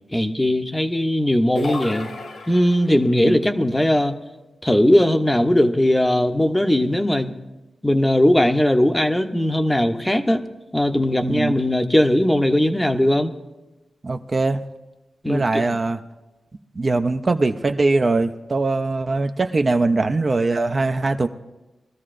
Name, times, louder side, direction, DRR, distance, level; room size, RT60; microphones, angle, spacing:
voice 1, 0.1-2.1 2.5-4.2 4.6-7.4 7.8-10.4 10.7-13.3 15.2-15.8, left 1 dB, 10° left, 7 dB, 0.7 m, -19 dB
sound 1, 1.6-3.1, left 2 dB, 90° left, 2.1 m, -32 dB
voice 2, 11.2-11.5 14.0-14.6 15.3-16.0 16.8-21.3, right 3 dB, 35° right, 7 dB, 0.5 m, -21 dB
21.5 x 13.5 x 2.5 m, 1.1 s
wide cardioid pair, 95°, 0 cm